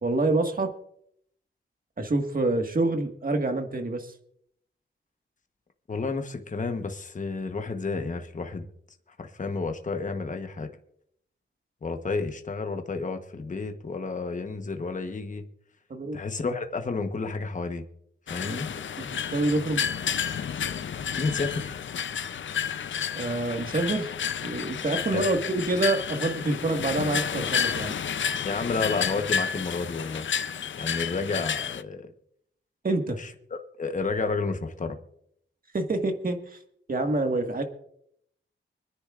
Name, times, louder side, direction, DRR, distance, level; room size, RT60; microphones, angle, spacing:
voice 1, 0.0-0.7 2.0-4.1 15.9-16.2 18.4-18.6 19.0-19.9 23.1-24.1 24.4-27.9 32.8-33.2 35.7-36.6 36.9-37.6, right 2 dB, 40° right, 5 dB, 1.7 m, -27 dB
voice 2, 5.9-8.7 9.2-10.7 11.8-15.5 16.1-17.8 18.3-18.7 21.1-21.8 25.1-25.2 28.4-30.2 30.7-32.1 33.2-35.0, left 4 dB, 35° left, 6 dB, 1.1 m, -31 dB
sound 1, 18.3-31.8, left 7 dB, 65° left, 0.6 m, -31 dB
25.5 x 10.0 x 2.5 m, 0.70 s
wide cardioid pair, 125°, 21 cm